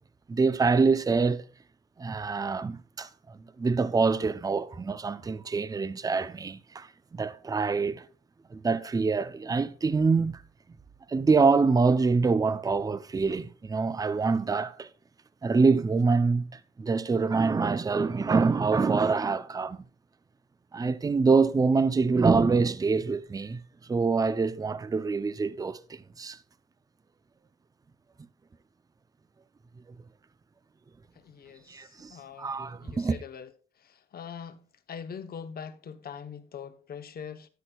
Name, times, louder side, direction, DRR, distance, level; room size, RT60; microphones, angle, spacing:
voice 1, 0.3-1.4 2.0-8.0 8.5-10.4 11.1-14.9 15.4-19.8 20.7-23.6 23.9-26.4 31.7-33.2, right 4 dB, 20° right, 0.5 m, -25 dB
voice 2, 32.1-32.5 32.8-33.5 34.1-34.6 34.9-37.5, left 7 dB, 50° left, 1.0 m, -41 dB
13.0 x 9.8 x 2.3 m
cardioid pair, 90°, 20 cm